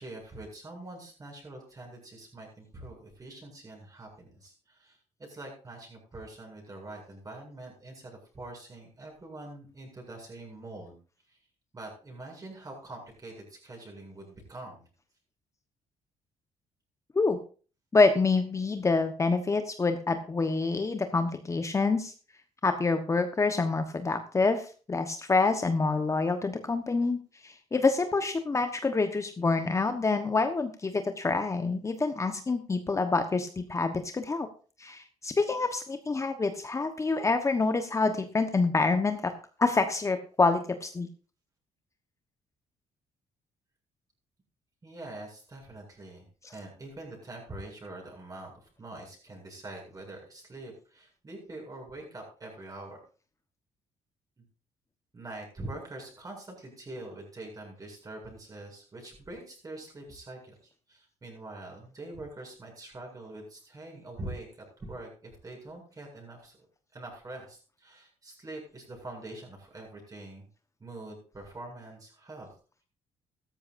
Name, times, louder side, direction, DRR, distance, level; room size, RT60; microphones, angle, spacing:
voice 1, 0.0-11.0 11.3-11.4 11.7-14.8 44.8-46.3 46.5-53.0 54.4-54.5 55.1-66.7 66.9-70.5 70.8-72.5, right 2 dB, 30° right, 1 dB, 7.7 m, -44 dB
voice 2, 17.9-22.1 22.6-27.2 27.4-34.5 34.8-39.3 39.6-41.1, left 3 dB, 25° left, 7 dB, 1.2 m, -27 dB
15.5 x 13.5 x 2.6 m, 0.38 s
cardioid pair, 110°, 13 cm